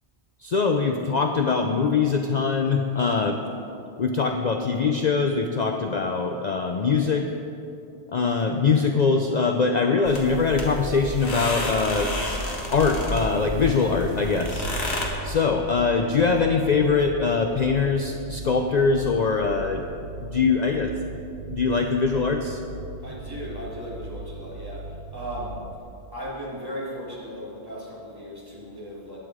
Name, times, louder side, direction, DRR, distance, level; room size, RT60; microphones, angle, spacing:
voice 1, 0.4-3.4 4.0-7.3 8.1-12.1 12.7-14.7 15.2-19.8 20.2-21.0 21.5-22.6, left 4 dB, 45° left, 4 dB, 0.7 m, -22 dB
sound 1, 10.0-15.1, left 1 dB, 75° left, 2.1 m, -30 dB
sound 2, 13.7-25.8, right 2 dB, 65° right, 1.0 m, -39 dB
voice 2, 23.0-25.6 26.1-29.2, equal, 20° right, -7 dB, 3.2 m, -36 dB
15.5 x 10.0 x 4.9 m, 2.7 s
omnidirectional pair, 1.1 m